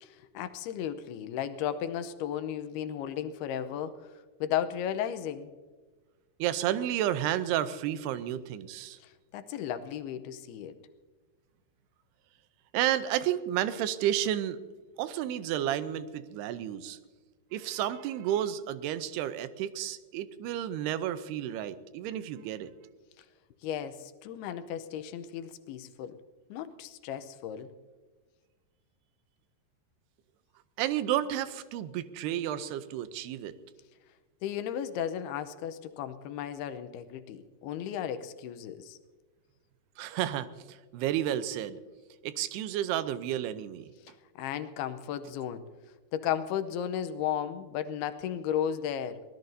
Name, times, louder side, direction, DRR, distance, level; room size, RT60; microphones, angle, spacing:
voice 1, 0.0-4.1 4.4-5.5 9.0-10.8 23.2-23.3 23.6-26.2 26.5-27.7 34.4-39.0 44.1-45.6 46.1-49.2, left 9 dB, 85° left, 10 dB, 2.7 m, -35 dB
voice 2, 6.4-9.0 12.7-14.6 15.0-17.0 17.5-22.7 30.8-33.6 40.0-41.8 42.2-43.9, right 11 dB, 85° right, 13 dB, 2.7 m, -31 dB
23.5 x 18.0 x 2.7 m, 1.4 s
omnidirectional pair, 4.6 m